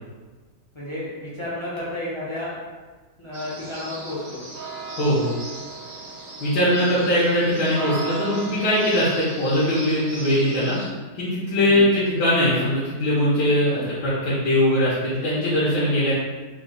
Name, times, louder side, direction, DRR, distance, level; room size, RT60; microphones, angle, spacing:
voice 1, 0.7-2.6 3.2-4.4 6.8-6.9 11.6-12.0 13.6-13.9, left 1 dB, 35° left, -9 dB, 0.4 m, -32 dB
sound 1, 3.3-10.9, right 3 dB, 80° right, 1.6 m, -36 dB
voice 2, 5.0-5.3 6.4-10.8 11.1-16.1, left 1 dB, 70° left, -9 dB, 1.5 m, -21 dB
4.3 x 2.1 x 3.8 m, 1.3 s
omnidirectional pair, 2.0 m